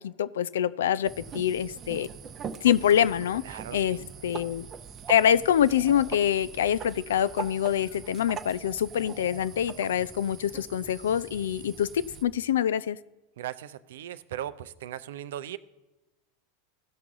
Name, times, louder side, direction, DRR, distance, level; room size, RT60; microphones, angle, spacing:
voice 1, 0.0-2.1 2.6-4.7 5.1-13.0, left 10 dB, 70° left, 17 dB, 0.4 m, -25 dB
sound 1, 1.0-12.2, right 7 dB, 30° right, 0.7 m, -42 dB
voice 2, 3.4-4.1 13.4-15.6, right 12 dB, 70° right, 14 dB, 0.5 m, -38 dB
16.0 x 6.0 x 3.6 m, 1.0 s
hypercardioid pair, 90°, 0 cm